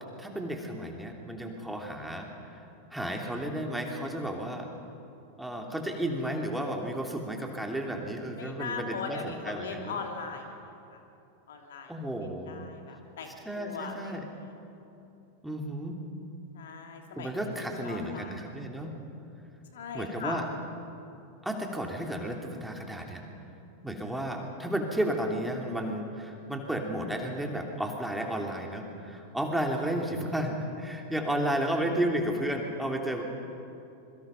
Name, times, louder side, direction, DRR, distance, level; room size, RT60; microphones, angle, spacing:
voice 1, 0.2-2.6 2.9-4.7 5.4-10.0 11.9-12.7 13.4-14.3 15.4-16.0 17.2-18.9 19.9-20.5 21.4-23.2 23.8-33.2, right 1 dB, 5° right, 2 dB, 3.0 m, -33 dB
voice 2, 8.4-10.6 10.9-11.0 11.5-11.9 12.5-14.2 16.5-17.3 17.6-18.3 19.7-20.5, left 5 dB, 60° left, 3 dB, 2.9 m, -39 dB
26.5 x 23.0 x 5.8 m, 2.9 s
figure-of-eight pair, 90°, 0 cm